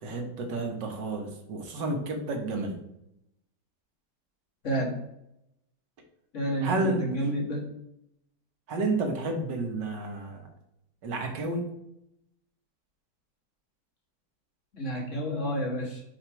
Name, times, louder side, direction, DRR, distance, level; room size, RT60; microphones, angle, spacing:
voice 1, 0.0-2.8 6.6-7.1 8.7-10.5 11.0-11.7, right 2 dB, 85° right, 3 dB, 1.8 m, -31 dB
voice 2, 4.6-5.0 6.3-7.7 14.7-16.0, right 1 dB, 45° left, -2 dB, 1.7 m, -30 dB
5.1 x 4.3 x 4.4 m, 0.81 s
omnidirectional pair, 1.8 m